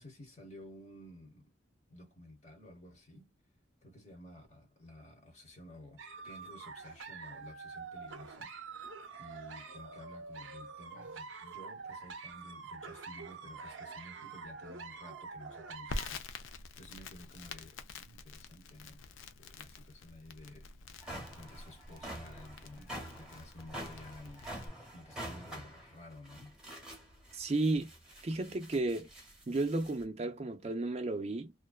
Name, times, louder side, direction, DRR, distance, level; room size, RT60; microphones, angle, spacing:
voice 1, 0.0-1.5 1.9-3.3 3.8-26.6, left 1 dB, 35° left, 1.0 m, -53 dB
sound 1, 6.0-16.1, right 5 dB, 80° right, 0.6 m, -46 dB
Crackle, 15.9-24.7, left 3 dB, 90° left, 0.4 m, -47 dB
sound 2, 20.3-20.4 20.8-30.0, right 1 dB, 5° right, 0.9 m, -47 dB
voice 2, 27.3-27.9 28.2-29.1 29.5-31.5, right 2 dB, 35° right, 0.4 m, -33 dB
2.5 x 2.2 x 2.2 m
head